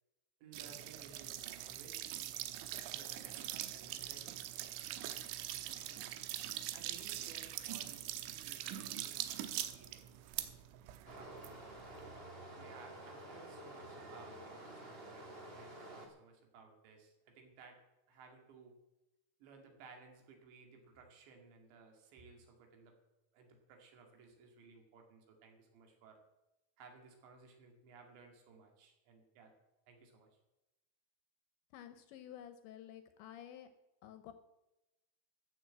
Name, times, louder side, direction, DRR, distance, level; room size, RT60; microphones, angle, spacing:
voice 1, 0.4-2.2 2.9-4.4 5.8-6.1 6.7-10.1 11.1-11.9 12.5-17.8 18.1-18.8 19.4-22.9 23.3-26.2 26.8-29.5 29.9-30.3, right 5 dB, 65° right, 3 dB, 4.3 m, -59 dB
sound 1, 0.5-12.2, right 13 dB, 85° right, 3.2 m, -43 dB
Stream, 11.0-16.1, right 1 dB, 45° right, 0.7 m, -50 dB
voice 2, 31.7-33.7 34.0-34.3, left 10 dB, 75° left, 10 dB, 2.9 m, -51 dB
14.0 x 8.5 x 7.6 m, 0.96 s
omnidirectional pair, 5.7 m